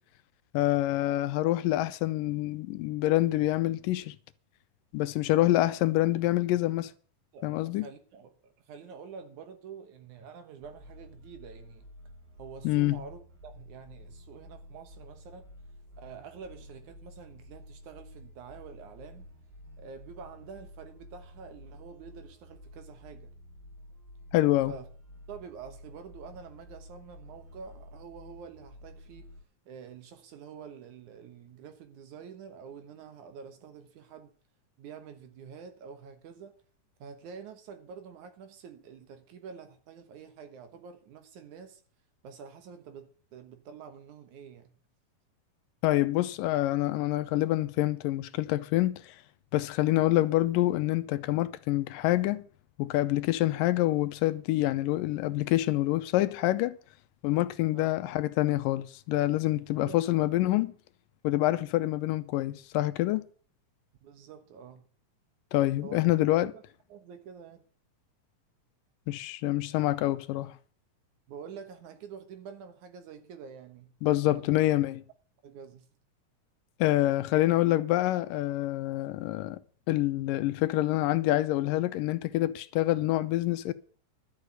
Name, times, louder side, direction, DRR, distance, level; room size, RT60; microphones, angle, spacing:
voice 1, 0.5-4.1 4.9-6.9 7.4-7.9 12.6-13.0 24.3-24.7 45.8-49.2 49.5-52.4 52.8-56.8 57.2-60.7 61.2-63.2 65.5-66.5 69.1-70.5 74.0-75.0 76.8-79.6 79.9-83.7, left 16 dB, 80° left, 2.3 m, -26 dB
voice 2, 7.3-11.9 12.4-15.5 16.0-19.3 19.8-23.3 24.7-24.9 25.3-29.3 29.7-34.3 34.8-36.6 37.0-41.8 42.2-44.8 57.7-57.9 59.5-60.0 64.0-64.9 65.8-66.0 66.4-66.6 66.9-67.7 71.3-74.0 74.3-74.6 75.4-75.9, right 6 dB, 65° right, 2.5 m, -47 dB
sound 1, 10.6-29.4, left 1 dB, 85° right, 5.7 m, -51 dB
12.0 x 6.7 x 8.0 m
omnidirectional pair, 3.9 m